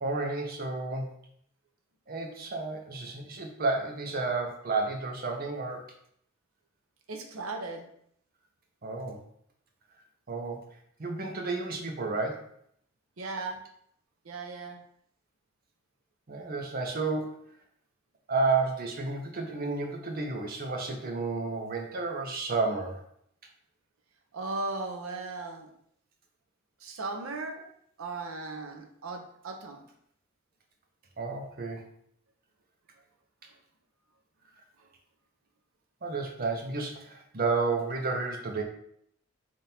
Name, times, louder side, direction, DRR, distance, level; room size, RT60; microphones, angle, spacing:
voice 1, 0.0-1.1 2.1-5.8 8.8-9.2 10.3-10.6 11.0-12.5 16.3-17.4 18.3-23.0 31.2-31.8 36.0-38.6, right 3 dB, 45° right, 2 dB, 0.7 m, -31 dB
voice 2, 7.1-7.9 13.2-13.6 14.2-14.8 24.3-25.7 26.8-27.7 28.0-29.8, right 3 dB, 90° right, 3 dB, 0.7 m, -37 dB
3.6 x 2.5 x 4.2 m, 0.68 s
head